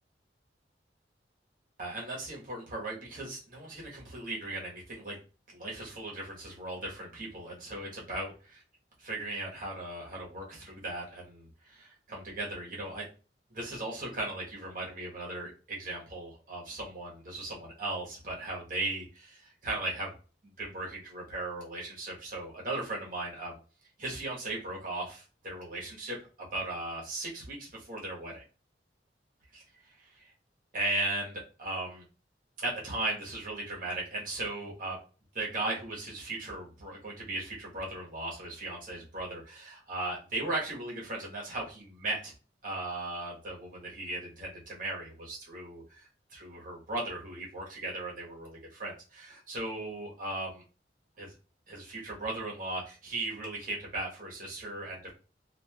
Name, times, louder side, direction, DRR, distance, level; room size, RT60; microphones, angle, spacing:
voice 1, 1.8-5.2 5.5-8.6 9.0-13.0 13.5-20.1 20.4-23.6 24.0-28.4 29.5-29.6 30.0-30.3 30.7-32.0 32.6-35.0 35.3-42.3 42.6-50.6 51.2-51.3 51.7-55.1, right 2 dB, 50° right, -3 dB, 1.1 m, -37 dB
3.2 x 2.4 x 2.2 m, 0.35 s
head